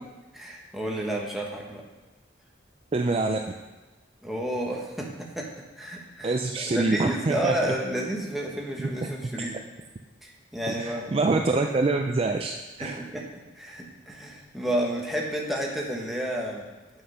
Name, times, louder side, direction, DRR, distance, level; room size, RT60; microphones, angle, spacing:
voice 1, 0.3-1.8 4.2-5.5 5.7-9.6 10.2-11.2 12.8-13.2 13.6-16.7, right 1 dB, ahead, -2 dB, 1.3 m, -31 dB
voice 2, 2.9-3.4 6.2-7.7 8.8-9.1 9.4-9.5 10.7-13.0, right 3 dB, 30° right, 4 dB, 0.4 m, -26 dB
7.9 x 6.4 x 5.6 m, 1.2 s
head